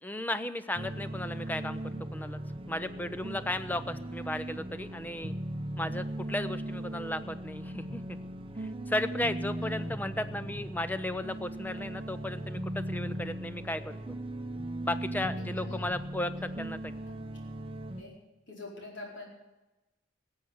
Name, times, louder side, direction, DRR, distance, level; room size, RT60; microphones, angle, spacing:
voice 1, 0.0-2.4 2.7-5.3 5.8-8.2 8.6-14.0 14.8-17.0, left 1 dB, 10° left, 12 dB, 0.5 m, -35 dB
sound 1, 0.7-18.0, right 1 dB, 25° right, 0.8 m, -38 dB
voice 2, 15.2-15.8 17.1-17.2 18.0-18.1 18.5-19.3, left 2 dB, 60° left, -2 dB, 4.7 m, -45 dB
15.5 x 8.0 x 9.2 m, 1.0 s
head